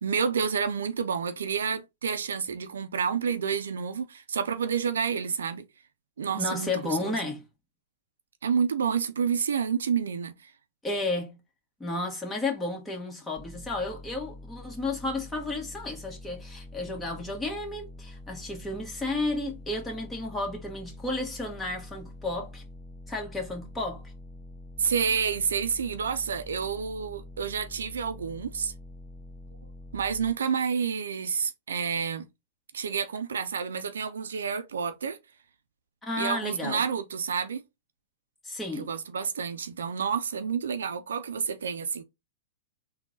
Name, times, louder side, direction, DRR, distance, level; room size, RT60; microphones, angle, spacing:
voice 1, 0.0-5.7 6.2-7.3 8.4-10.5 24.8-28.7 29.9-32.3 32.7-35.2 36.2-37.6 38.7-42.0, right 6 dB, 80° right, 0.5 m, -29 dB
voice 2, 6.3-7.4 10.8-11.4 11.8-22.6 23.1-24.0 36.0-36.8 38.4-38.9, left 2 dB, 10° left, 1.6 m, -32 dB
sound 1, 13.4-30.3, left 1 dB, 5° right, 0.5 m, -46 dB
3.7 x 2.4 x 3.8 m
hypercardioid pair, 115°, 0 cm